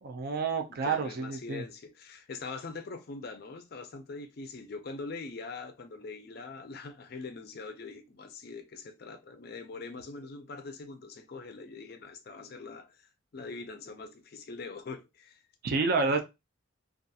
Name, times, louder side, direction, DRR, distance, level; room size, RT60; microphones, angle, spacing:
voice 1, 0.0-1.6 15.6-16.2, right 4 dB, 45° right, 0.3 m, -29 dB
voice 2, 0.8-15.4, left 4 dB, 45° left, 0.4 m, -43 dB
2.4 x 2.3 x 2.6 m
head